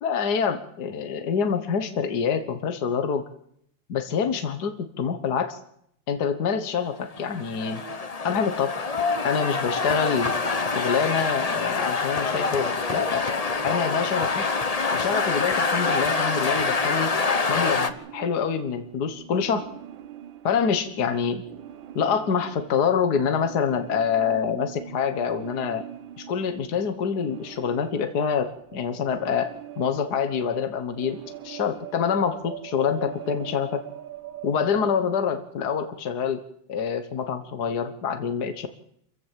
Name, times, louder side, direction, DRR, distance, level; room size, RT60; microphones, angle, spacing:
voice 1, 0.0-3.3 3.9-5.6 6.1-7.8 8.2-8.8 9.2-10.3 10.7-13.3 13.6-14.4 14.9-17.1 17.5-19.7 20.4-21.4 21.9-25.8 26.2-31.2 31.4-33.8 34.4-36.4 36.7-38.7, left 6 dB, 60° left, 8 dB, 1.8 m, -26 dB
sound 1, 7.1-17.9, left 4 dB, 30° left, 0.7 m, -26 dB
sound 2, 15.7-34.9, right 11 dB, 80° right, 1.9 m, -43 dB
27.0 x 15.5 x 7.4 m, 0.72 s
omnidirectional pair, 2.1 m